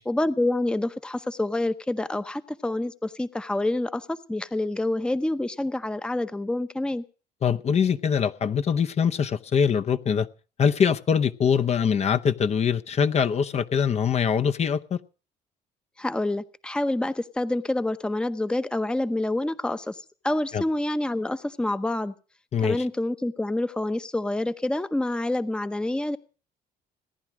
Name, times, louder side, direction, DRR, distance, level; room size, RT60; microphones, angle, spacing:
voice 1, 0.1-7.0 16.0-22.1 22.6-26.2, left 1 dB, 5° left, 0.7 m, -27 dB
voice 2, 7.4-10.3 10.6-15.0 20.5-20.6 22.5-22.9, left 7 dB, 40° left, 0.8 m, -23 dB
18.5 x 10.5 x 6.2 m
cardioid pair, 110°, 17 cm